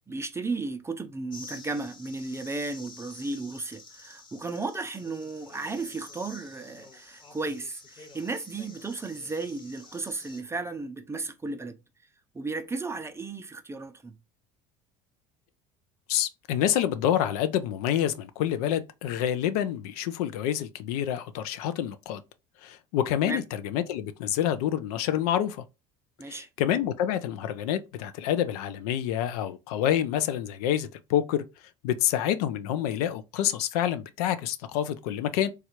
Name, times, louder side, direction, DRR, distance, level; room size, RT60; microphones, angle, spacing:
voice 1, 0.1-11.8 12.3-14.1 23.2-23.4 26.2-26.5, right 3 dB, 15° right, 0.4 m, -34 dB
sound 1, 1.3-10.4, left 3 dB, 25° left, 0.9 m, -49 dB
voice 2, 16.1-22.2 22.6-25.6 26.3-31.4 31.8-35.5, left 11 dB, 75° left, 0.4 m, -27 dB
3.2 x 2.3 x 2.9 m
hypercardioid pair, 75°, 20 cm